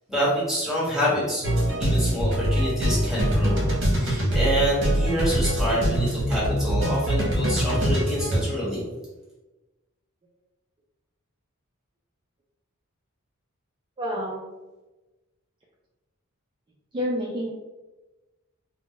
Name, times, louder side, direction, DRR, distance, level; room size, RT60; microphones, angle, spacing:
voice 1, 0.1-1.5 1.8-8.9, equal, ahead, -9 dB, 1.2 m, -27 dB
sound 1, 1.4-8.4, equal, 60° right, 0.8 m, -23 dB
voice 2, 14.0-14.4 16.9-17.5, equal, 25° right, -4 dB, 0.3 m, -28 dB
2.3 x 2.1 x 3.7 m, 1.1 s
head